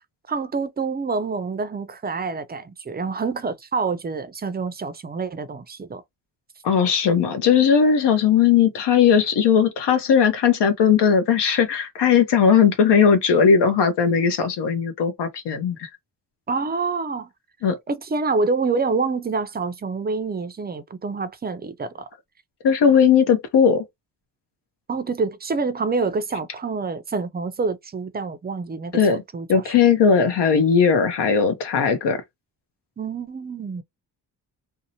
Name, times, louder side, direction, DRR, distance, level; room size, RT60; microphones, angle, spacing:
voice 1, 0.3-6.0 16.5-17.3 17.9-22.1 24.9-29.6 33.0-33.8, right 4 dB, 25° right, 0.4 m, -27 dB
voice 2, 6.6-15.9 17.6-17.8 22.6-23.8 28.9-29.2 29.5-32.2, left 7 dB, 70° left, 0.7 m, -18 dB
2.7 x 2.0 x 2.7 m
cardioid pair, 85°, 42 cm